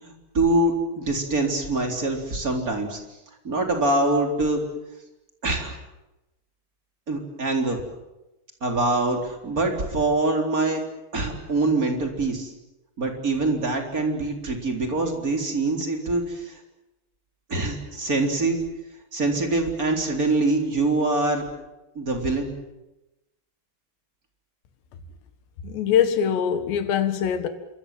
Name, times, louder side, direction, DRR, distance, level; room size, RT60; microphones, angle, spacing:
voice 1, 0.0-3.0 3.4-4.6 5.4-5.7 7.1-7.8 8.6-10.8 11.1-12.5 13.0-16.6 17.5-18.6 19.1-21.4 22.0-22.5, right 2 dB, 20° right, 3.8 m, -24 dB
voice 2, 25.6-27.5, left 8 dB, 80° left, 3.9 m, -23 dB
28.0 x 24.0 x 7.6 m
omnidirectional pair, 5.0 m